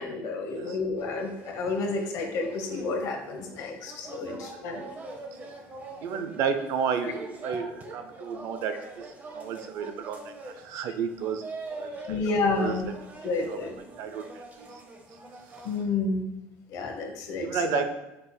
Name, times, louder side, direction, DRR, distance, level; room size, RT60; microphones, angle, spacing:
voice 1, 0.0-4.8 12.0-12.9 13.2-13.8 15.6-16.2 16.7-17.5, left 3 dB, 60° left, 3 dB, 0.9 m, -30 dB
sound 1, 1.0-15.8, right 2 dB, 30° right, 0.8 m, -43 dB
voice 2, 4.2-4.6 5.3-5.4 6.0-9.1 9.3-11.5 11.8-12.2 12.5-12.9 13.2-13.6 14.0-14.8 17.4-17.9, right 7 dB, 60° right, 8 dB, 0.5 m, -32 dB
5.5 x 4.2 x 2.3 m, 0.96 s
cardioid pair, 120°, 6 cm